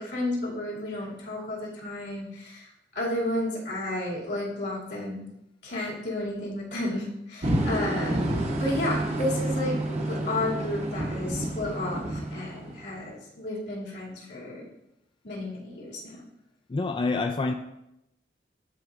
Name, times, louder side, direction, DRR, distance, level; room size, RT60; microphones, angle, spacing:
voice 1, 0.0-2.7 2.9-5.2 5.6-8.2 8.6-9.8 10.1-14.7 15.2-16.2, left 1 dB, 80° left, -5 dB, 2.4 m, -32 dB
sound 1, 7.4-13.1, right 1 dB, 40° right, 0.9 m, -29 dB
voice 2, 16.7-17.5, left 3 dB, 30° left, 5 dB, 0.3 m, -27 dB
12.0 x 4.5 x 2.5 m, 0.85 s
head